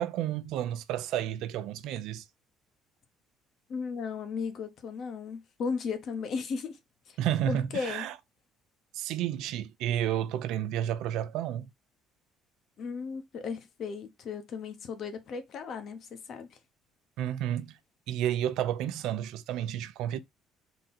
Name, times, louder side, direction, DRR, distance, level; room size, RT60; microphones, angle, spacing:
voice 1, 0.0-2.2 7.2-8.1 8.9-11.7 17.2-17.7 18.1-20.2, right 11 dB, 70° right, 0.5 m, -31 dB
voice 2, 3.7-6.8 7.1-7.2 7.5-8.0 12.8-16.5, left 5 dB, 45° left, 0.9 m, -35 dB
3.8 x 2.8 x 4.2 m
cardioid pair, 150°, 0 cm